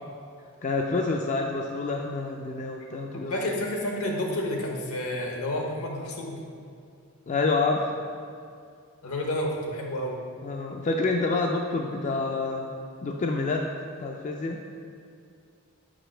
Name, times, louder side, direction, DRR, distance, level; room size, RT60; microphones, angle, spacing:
voice 1, 0.6-3.3 7.3-8.0 10.4-12.7 13.0-13.7 14.0-14.6, left 3 dB, 35° left, 1 dB, 0.3 m, -27 dB
voice 2, 3.3-6.4 9.0-10.2, left 1 dB, 75° left, 0 dB, 1.0 m, -30 dB
4.9 x 4.7 x 4.4 m, 2.4 s
head